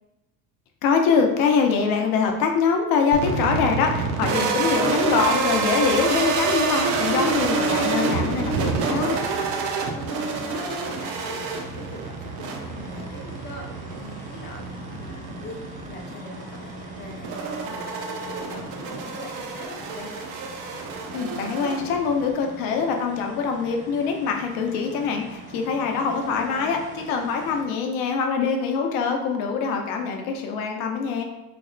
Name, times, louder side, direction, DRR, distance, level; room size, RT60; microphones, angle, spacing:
voice 1, 0.8-9.2 21.1-31.2, left 5 dB, 70° left, 3 dB, 0.7 m, -24 dB
sound 1, 3.1-22.3, right 4 dB, 85° right, 0.7 m, -27 dB
voice 2, 9.9-20.1 25.9-26.8, left 2 dB, 30° left, 1 dB, 0.5 m, -42 dB
sound 2, 10.1-27.7, right 2 dB, 20° right, 0.5 m, -42 dB
3.4 x 2.1 x 3.8 m, 1.0 s
cardioid pair, 165°, 36 cm